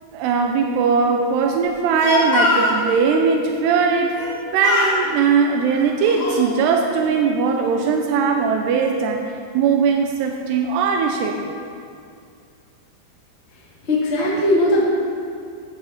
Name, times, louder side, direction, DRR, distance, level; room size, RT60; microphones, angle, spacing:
voice 1, 0.1-4.1 4.5-9.2 9.5-11.5, right 5 dB, 90° right, 2 dB, 2.8 m, -19 dB
Speech, 1.7-2.8 4.1-4.4 4.6-5.0 5.7-6.5, left 2 dB, 65° left, 3.7 m, -22 dB
voice 2, 13.5-14.9, left 1 dB, 35° left, -6 dB, 1.0 m, -19 dB
14.5 x 9.3 x 4.2 m, 2.4 s
omnidirectional pair, 4.8 m